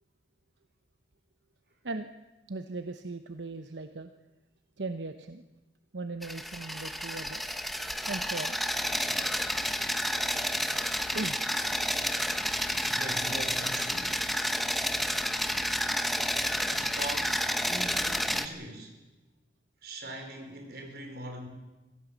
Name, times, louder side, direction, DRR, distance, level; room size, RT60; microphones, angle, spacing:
voice 1, 2.5-4.1 4.8-5.4 5.9-7.4 8.1-8.6 11.1-11.4, right 3 dB, 85° right, 8 dB, 0.9 m, -38 dB
sound 1, 6.2-18.5, equal, ahead, 1.0 m, -30 dB
voice 2, 12.8-14.3 16.7-19.0 19.8-21.5, right 1 dB, 60° right, 4 dB, 4.6 m, -41 dB
24.5 x 16.5 x 7.3 m, 1.1 s
head